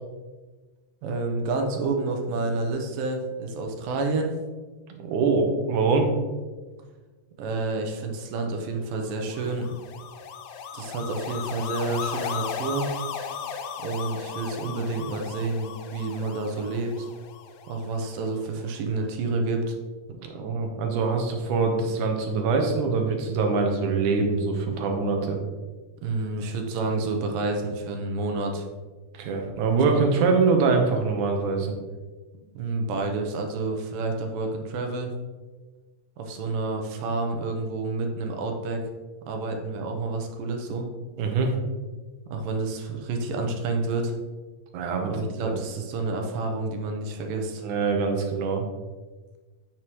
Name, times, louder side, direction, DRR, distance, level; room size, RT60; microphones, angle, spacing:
voice 1, 1.0-4.4 7.4-9.7 10.7-12.9 13.8-17.1 17.7-19.8 26.0-28.7 32.4-35.1 36.2-38.8 39.3-40.9 42.3-44.1 45.1-47.6, right 3 dB, 85° right, 3 dB, 2.7 m, -29 dB
voice 2, 4.9-6.1 20.2-25.4 29.1-31.8 41.2-41.5 44.7-45.2 45.4-45.5 47.6-48.6, right 4 dB, 70° right, 3 dB, 2.4 m, -24 dB
sound 1, 9.1-18.4, left 7 dB, 90° left, 2.3 m, -36 dB
9.1 x 6.5 x 3.1 m, 1.3 s
omnidirectional pair, 3.9 m